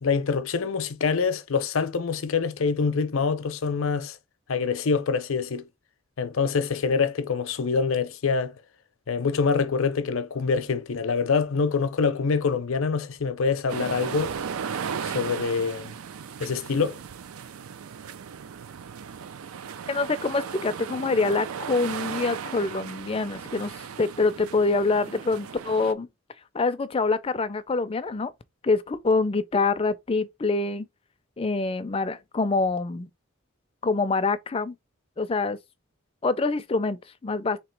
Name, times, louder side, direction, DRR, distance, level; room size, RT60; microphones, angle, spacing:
voice 1, 0.0-4.2 4.5-5.6 6.2-8.5 9.1-14.3 15.0-15.9 16.4-17.0, left 5 dB, 75° left, 0.6 m, -25 dB
sound 1, 13.7-25.9, right 7 dB, 85° right, 0.4 m, -36 dB
voice 2, 19.9-26.1 26.5-28.3 28.6-30.9 31.4-33.1 33.8-34.7 35.2-35.6 36.2-37.6, left 3 dB, 25° left, 0.4 m, -25 dB
3.5 x 2.9 x 4.5 m
head